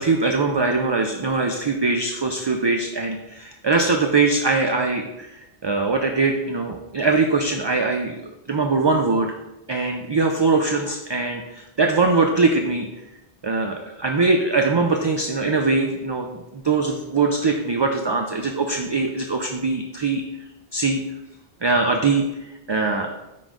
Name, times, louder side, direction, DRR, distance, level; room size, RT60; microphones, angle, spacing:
voice 1, 0.0-9.3 9.7-12.9 13.4-20.2 20.7-21.0 21.6-23.1, right 3 dB, 35° right, 3 dB, 0.4 m, -22 dB
9.9 x 3.8 x 3.8 m, 0.95 s
omnidirectional pair, 1.0 m